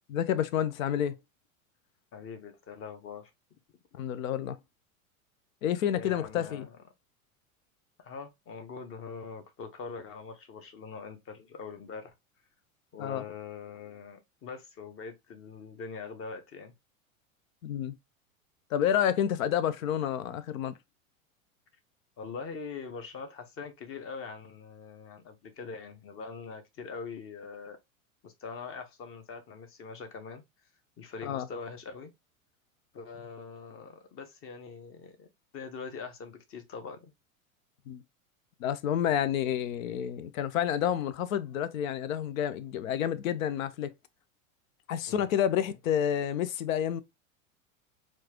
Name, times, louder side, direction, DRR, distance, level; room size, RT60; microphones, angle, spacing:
voice 1, 0.1-1.2 3.9-4.6 5.6-6.7 13.0-13.2 17.6-17.9 18.7-20.7 31.2-31.5 37.9-38.0 38.6-43.9 44.9-47.0, left 9 dB, 70° left, 0.7 m, -29 dB
voice 2, 2.1-3.3 5.9-6.8 8.0-12.1 12.9-16.7 22.2-27.8 28.2-30.4 31.0-32.1 32.9-35.3 35.5-37.1 45.1-45.5, left 5 dB, 30° left, 1.0 m, -43 dB
4.5 x 2.4 x 2.9 m
hypercardioid pair, 95°, 42 cm